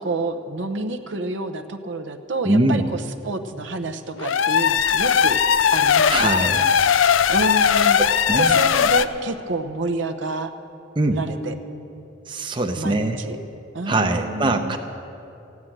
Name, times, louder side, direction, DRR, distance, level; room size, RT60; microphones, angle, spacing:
voice 1, 0.0-5.4 5.7-6.7 7.0-8.0 8.4-10.5 11.1-11.5 12.8-13.4 13.7-14.8, right 3 dB, 65° right, 6 dB, 0.8 m, -29 dB
voice 2, 2.4-2.8 6.1-6.7 8.0-8.6 11.0-11.2 12.3-13.2 13.9-14.8, right 2 dB, 25° right, 5 dB, 0.7 m, -22 dB
sound 1, 4.2-9.1, left 7 dB, 80° left, 0.5 m, -18 dB
15.0 x 9.5 x 8.7 m, 2.8 s
head